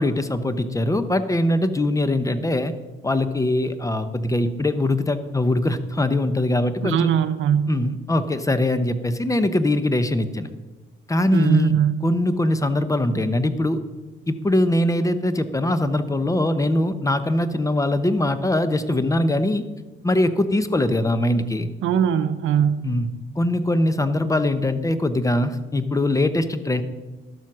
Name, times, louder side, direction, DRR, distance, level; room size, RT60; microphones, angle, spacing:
voice 1, 0.0-2.7 3.0-7.1 7.7-10.5 11.1-11.7 12.0-13.8 14.3-19.6 20.0-21.7 22.8-23.1 23.4-26.8, left 1 dB, 15° left, 11 dB, 0.8 m, -22 dB
voice 2, 6.8-7.7 11.3-12.0 21.8-22.9, right 8 dB, 80° right, 11 dB, 0.7 m, -20 dB
12.0 x 7.3 x 6.1 m, 1.2 s
cardioid pair, 90°, 20 cm